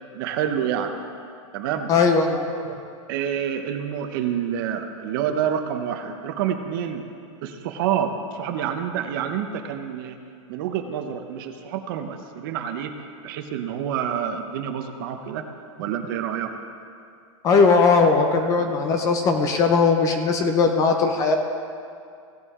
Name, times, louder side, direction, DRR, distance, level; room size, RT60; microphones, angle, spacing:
voice 1, 0.1-0.9 1.5-1.9 2.6-2.7 3.1-7.0 7.4-10.2 10.5-15.5 15.8-16.5 18.4-18.7, right 9 dB, 40° right, 6 dB, 0.8 m, -28 dB
voice 2, 1.9-2.5 17.4-21.3, left 4 dB, 20° left, 5 dB, 0.6 m, -19 dB
16.5 x 8.2 x 3.7 m, 2.4 s
supercardioid pair, 170°, 17 cm